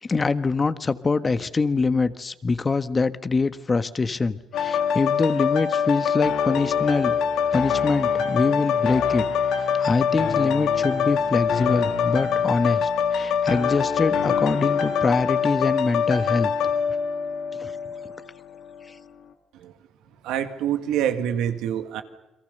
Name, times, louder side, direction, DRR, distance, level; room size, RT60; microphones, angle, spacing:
voice 1, 0.0-7.2 7.5-9.2 9.6-16.5 17.6-17.7, left 4 dB, 35° left, 12 dB, 1.5 m, -24 dB
sound 1, 4.5-18.2 18.7-18.8, left 6 dB, 80° left, 2.5 m, -24 dB
voice 2, 20.2-22.0, right 10 dB, 80° right, 8 dB, 1.8 m, -26 dB
29.5 x 22.5 x 6.8 m, 0.99 s
supercardioid pair, 55°, 0 cm